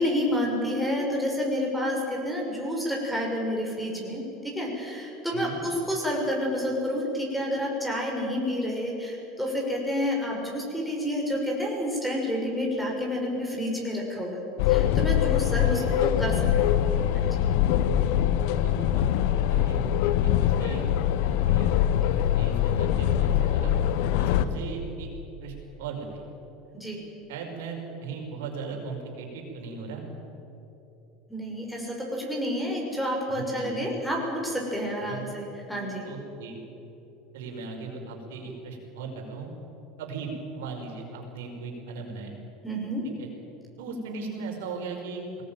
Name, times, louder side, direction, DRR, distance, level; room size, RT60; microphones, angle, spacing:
voice 1, 0.0-14.4 14.7-16.7 17.1-17.4 26.7-27.0 31.3-36.1 42.6-43.0, equal, ahead, -1 dB, 5.8 m, -29 dB
voice 2, 5.3-5.6 15.6-16.0 18.5-20.9 21.2-21.8 22.1-23.7 24.2-25.1 25.4-26.2 27.3-30.0 33.3-33.9 35.1-35.3 36.0-36.6 37.3-39.5 40.0-42.3 43.0-43.3 43.8-45.4, right 4 dB, 75° right, 1 dB, 5.4 m, -38 dB
sound 1, 14.6-24.5, left 11 dB, 70° left, 1.0 m, -23 dB
22.0 x 18.5 x 9.3 m, 3.0 s
hypercardioid pair, 85°, 0 cm